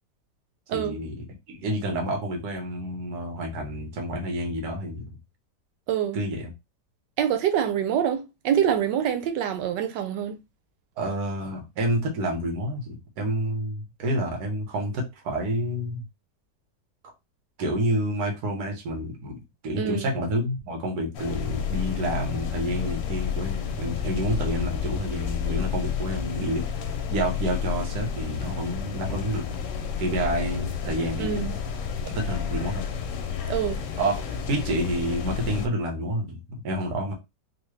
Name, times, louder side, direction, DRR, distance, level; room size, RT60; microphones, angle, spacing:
voice 1, 0.7-1.1 1.5-5.2 6.1-6.5 11.0-16.0 17.6-26.6 27.1-29.4 30.0-31.5 32.0-32.9 34.0-34.2 34.5-37.1, right 1 dB, 70° right, 1.6 m, -29 dB
voice 2, 5.9-6.2 7.2-10.4 19.8-20.1 31.2-31.5 33.5-33.8, right 9 dB, 90° right, 1.3 m, -25 dB
sound 1, 21.1-35.7, left 7 dB, 85° left, 1.2 m, -30 dB
3.7 x 2.2 x 3.1 m
omnidirectional pair, 1.8 m